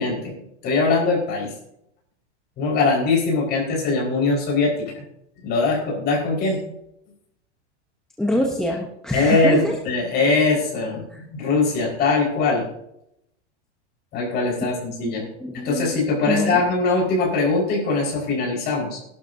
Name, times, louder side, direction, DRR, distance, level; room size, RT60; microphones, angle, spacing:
voice 1, 0.0-1.5 2.6-5.0 5.4-6.6 9.1-12.7 14.1-15.2 15.5-19.0, left 3 dB, 30° left, -1 dB, 5.0 m, -21 dB
voice 2, 8.2-9.8 11.1-11.2 15.0-16.6, left 1 dB, ahead, -1 dB, 0.9 m, -25 dB
19.5 x 12.0 x 2.8 m, 0.79 s
supercardioid pair, 160°, 35 cm